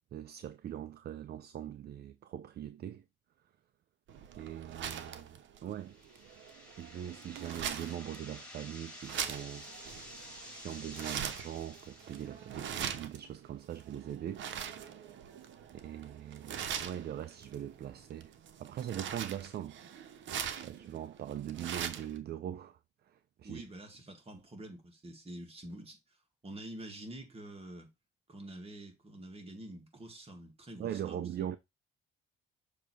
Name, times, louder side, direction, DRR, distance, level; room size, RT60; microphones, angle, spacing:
voice 1, 0.1-3.0 4.4-6.0 6.8-9.7 10.6-14.5 15.7-19.8 20.6-23.6 30.8-31.6, right 10 dB, 55° right, 0.5 m, -41 dB
sound 1, 4.1-22.2, right 8 dB, 70° right, 0.9 m, -42 dB
sound 2, 5.8-12.7, left 1 dB, 5° left, 2.3 m, -51 dB
voice 2, 23.4-26.0 26.4-27.9 28.3-31.2, right 1 dB, 30° right, 2.0 m, -47 dB
6.7 x 2.9 x 4.9 m
cardioid pair, 90°, 20 cm